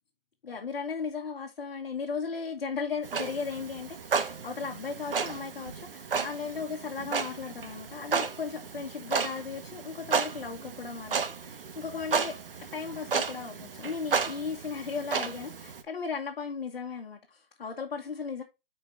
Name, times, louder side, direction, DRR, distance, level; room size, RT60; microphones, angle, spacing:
voice 1, 0.4-12.4 12.7-18.4, left 5 dB, 65° left, 1.3 m, -36 dB
Clock, 3.0-15.8, right 5 dB, 70° right, 1.0 m, -33 dB
5.8 x 4.5 x 3.8 m
hypercardioid pair, 180°, 29 cm